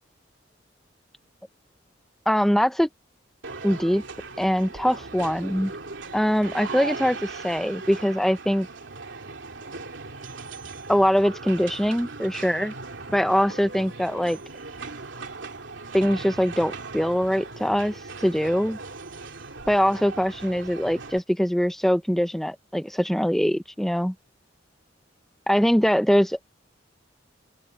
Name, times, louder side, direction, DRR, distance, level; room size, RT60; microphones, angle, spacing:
voice 1, 2.3-2.9 3.6-4.0 4.4-5.7 6.1-8.7 10.9-12.7 13.1-14.4 15.9-18.8 19.7-24.1 25.5-26.4, equal, ahead, 0.5 m, -23 dB
sound 1, 3.4-21.2, right 3 dB, 75° right, 3.0 m, -38 dB
open air
head